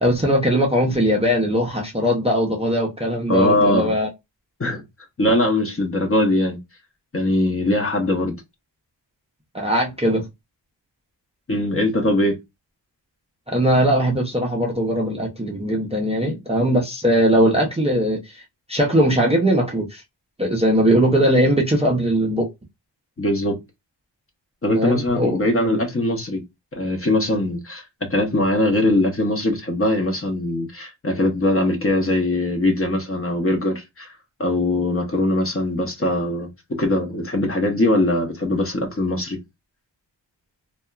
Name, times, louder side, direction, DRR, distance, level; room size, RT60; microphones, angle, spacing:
voice 1, 0.0-4.1 9.5-10.2 13.5-18.4 18.7-20.0 20.4-22.5 24.7-25.4, equal, 15° right, 0.4 m, -20 dB
voice 2, 3.3-3.9 4.6-4.8 5.2-6.6 7.1-8.4 11.5-12.4 23.2-23.6 24.6-26.4 26.7-27.8 28.1-34.1 34.4-39.4, left 1 dB, 30° left, 0.7 m, -21 dB
2.8 x 2.2 x 2.2 m
wide cardioid pair, 95°, 45 cm